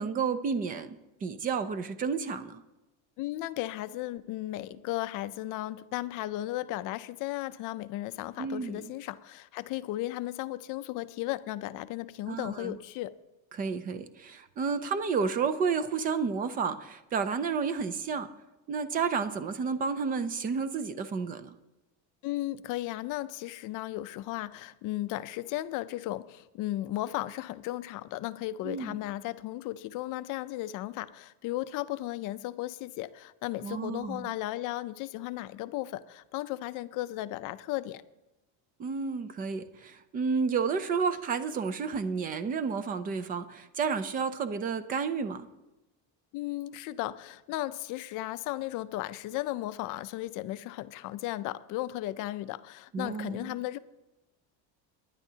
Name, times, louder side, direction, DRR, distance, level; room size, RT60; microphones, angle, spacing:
voice 1, 0.0-2.6 8.4-8.9 12.3-12.8 13.5-18.3 18.7-21.5 28.6-29.0 33.6-34.3 38.8-45.5 52.9-53.6, right 5 dB, 20° right, 0.4 m, -31 dB
voice 2, 3.2-13.2 22.2-38.0 46.3-53.8, left 16 dB, 50° left, 0.5 m, -35 dB
19.5 x 10.5 x 2.8 m
cardioid pair, 175°, 42 cm